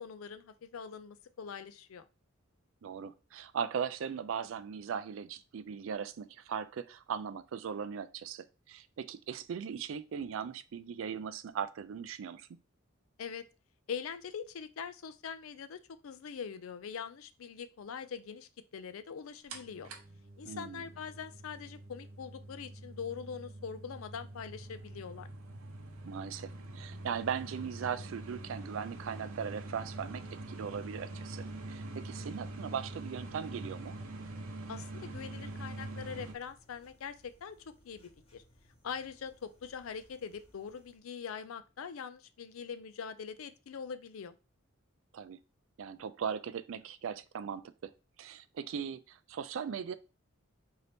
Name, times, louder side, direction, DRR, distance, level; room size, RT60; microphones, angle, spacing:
voice 1, 0.0-2.0 13.2-13.5 13.9-19.9 20.4-25.3 34.7-37.6 37.8-38.4 38.8-44.3, left 6 dB, 80° left, 0.4 m, -43 dB
voice 2, 2.8-12.5 20.4-20.9 26.1-30.2 30.5-34.0 45.1-45.4 45.8-47.9 48.2-49.9, right 7 dB, 70° right, 0.4 m, -39 dB
sound 1, 19.5-36.3, right 2 dB, 90° right, 0.7 m, -45 dB
sound 2, 35.3-41.0, equal, 30° left, 1.0 m, -65 dB
3.9 x 2.8 x 3.4 m
head